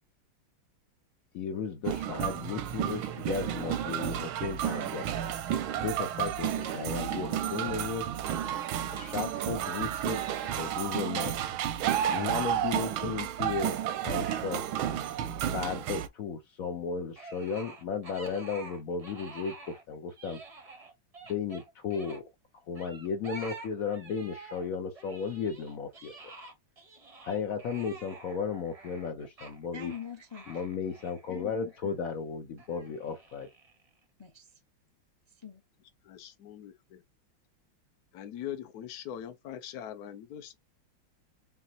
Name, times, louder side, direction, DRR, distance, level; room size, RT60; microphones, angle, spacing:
voice 1, 1.3-5.2 5.8-8.1 8.9-10.2 10.6-11.3 12.1-14.6 15.5-20.4 21.3-22.2 22.7-26.1 27.2-29.9 30.5-33.5, left 6 dB, 90° left, 0.7 m, -35 dB
sound 1, 1.8-16.1, right 10 dB, 90° right, 1.4 m, -32 dB
voice 2, 10.1-11.1 29.7-30.5 34.2-34.5 35.3-35.6, left 8 dB, 45° left, 0.3 m, -45 dB
sound 2, 17.2-19.8 20.1-22.2 22.8-24.7 25.0-32.0 32.6-33.9, right 3 dB, 40° right, 0.5 m, -48 dB
voice 3, 36.0-37.0 38.1-40.6, left 10 dB, 65° left, 1.0 m, -42 dB
5.6 x 2.5 x 2.7 m
omnidirectional pair, 2.3 m